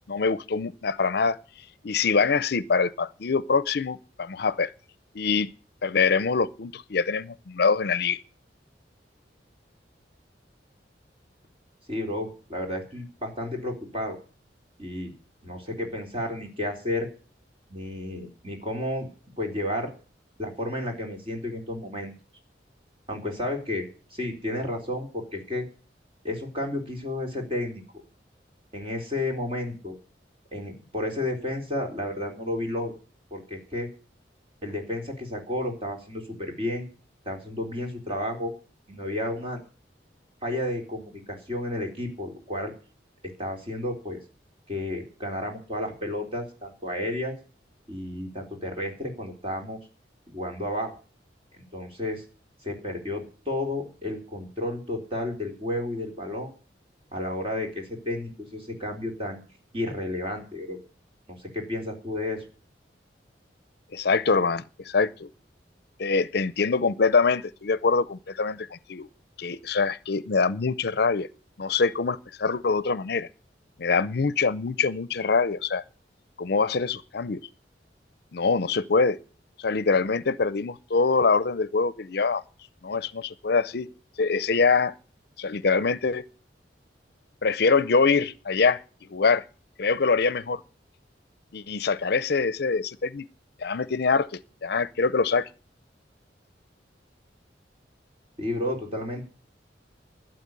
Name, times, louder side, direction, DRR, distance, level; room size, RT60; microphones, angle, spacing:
voice 1, 0.1-1.4 1.8-4.7 5.1-5.5 5.8-8.2 63.9-65.3 66.0-69.1 69.4-71.3 71.6-73.3 73.8-75.8 76.4-77.4 78.3-79.2 79.6-82.4 82.8-83.9 84.2-84.9 85.4-86.2 87.4-88.8 89.1-89.4 89.8-90.6 91.5-93.3 93.6-95.5, left 4 dB, 60° left, 0.6 m, -24 dB
voice 2, 11.9-14.2 14.8-15.1 15.4-17.1 17.7-19.1 19.4-19.9 20.4-22.1 23.1-23.8 24.1-25.6 26.2-27.8 28.7-30.0 30.5-32.9 33.3-33.9 34.6-36.9 37.2-38.5 38.9-39.6 40.4-42.7 43.4-44.2 44.7-47.4 47.9-49.8 50.3-51.0 51.7-52.2 52.6-56.5 57.1-59.4 59.7-60.8 61.3-62.4 98.4-99.3, left 1 dB, 30° right, 3.8 m, -32 dB
12.5 x 8.0 x 9.5 m
head